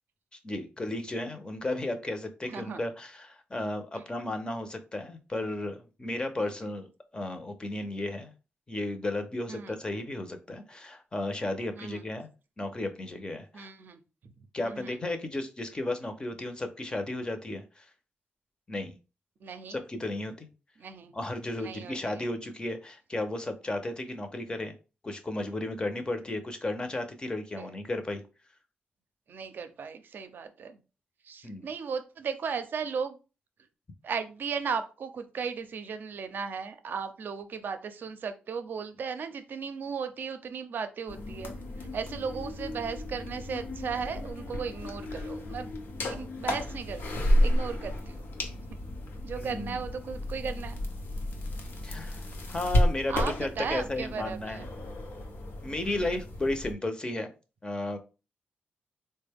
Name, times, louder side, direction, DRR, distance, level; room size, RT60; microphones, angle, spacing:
voice 1, 0.4-6.9 7.1-8.3 8.7-12.3 12.6-13.7 14.5-17.9 18.7-18.9 19.7-20.5 21.1-24.7 25.0-28.2 31.4-31.6 49.4-49.8 51.8-54.7 55.6-57.3 57.6-58.0, left 2 dB, 25° left, 7 dB, 0.6 m, -34 dB
voice 2, 2.4-2.8 3.9-4.0 6.4-6.6 9.5-9.8 11.8-12.1 13.5-14.3 14.6-15.0 19.4-19.8 20.8-21.1 21.6-22.3 27.6-27.7 29.3-30.8 31.2-33.2 34.0-41.5 41.8-45.7 46.1-48.2 49.2-50.8 53.1-54.7 55.8-56.2, right 6 dB, 65° right, 9 dB, 0.5 m, -36 dB
sound 1, 41.1-56.7, left 1 dB, 70° left, 0.8 m, -32 dB
3.8 x 2.2 x 3.4 m, 0.32 s
cardioid pair, 100°, 4 cm